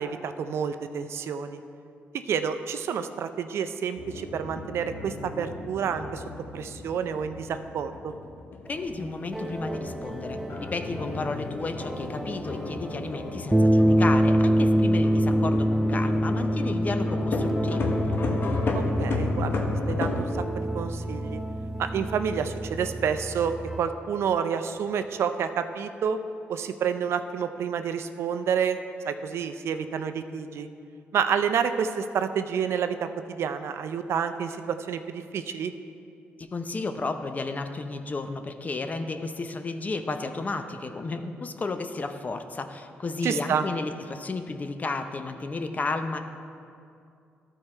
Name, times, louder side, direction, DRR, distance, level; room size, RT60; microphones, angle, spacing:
voice 1, 0.0-1.6 2.1-6.2 6.5-8.1 18.7-20.3 20.6-21.4 21.8-26.2 26.5-28.8 29.0-30.7 31.1-35.7 43.2-43.6, right 7 dB, 70° right, 9 dB, 0.4 m, -29 dB
sound 1, 4.0-20.2, left 3 dB, 55° left, 0.9 m, -34 dB
voice 2, 8.7-18.0 36.4-46.2, left 3 dB, 35° left, 7 dB, 0.6 m, -33 dB
sound 2, 8.9-23.8, equal, 10° right, 0.4 m, -26 dB
13.0 x 4.5 x 4.3 m, 2.5 s
cardioid pair, 75°, 5 cm